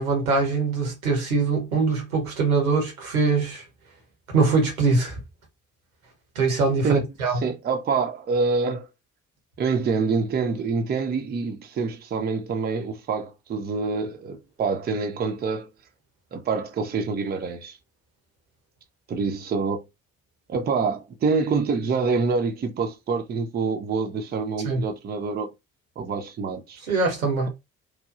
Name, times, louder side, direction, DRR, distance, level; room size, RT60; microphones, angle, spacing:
voice 1, 0.0-3.6 4.3-5.2 6.3-7.4 24.6-24.8 26.9-27.5, right 4 dB, 80° right, 1.0 m, -23 dB
voice 2, 7.3-8.9 9.6-15.7 16.3-17.8 19.1-19.8 20.5-25.5 26.0-27.0, right 4 dB, 25° right, 0.5 m, -26 dB
3.0 x 2.2 x 2.4 m
figure-of-eight pair, 45°, 42 cm